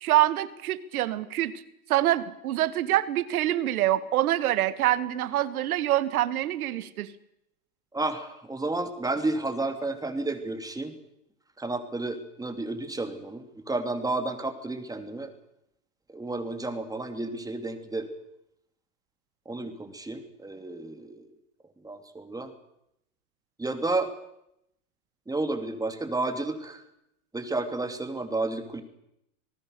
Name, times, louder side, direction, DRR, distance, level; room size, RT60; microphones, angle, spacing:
voice 1, 0.0-1.5 1.9-7.1, right 14 dB, 75° right, 14 dB, 1.9 m, -25 dB
voice 2, 7.9-10.9 11.6-15.3 16.1-18.1 19.4-21.3 21.8-22.5 23.6-24.1 25.3-26.8 27.3-28.8, right 2 dB, 10° right, 6 dB, 3.2 m, -31 dB
27.0 x 19.0 x 6.8 m, 0.80 s
hypercardioid pair, 110°, 44 cm